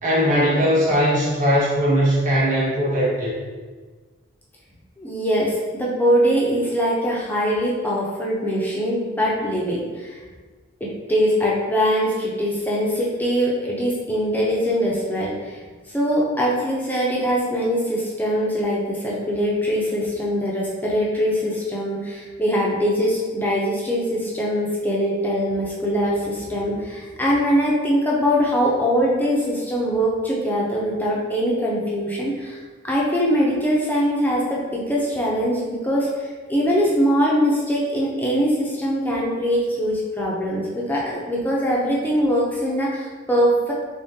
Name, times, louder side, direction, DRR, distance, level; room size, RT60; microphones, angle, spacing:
voice 1, 0.0-3.3, equal, 35° right, -6 dB, 1.1 m, -19 dB
voice 2, 5.0-10.2 10.8-15.6 15.9-32.6 32.8-43.7, equal, 10° left, -5 dB, 0.5 m, -22 dB
3.5 x 3.5 x 2.7 m, 1.4 s
head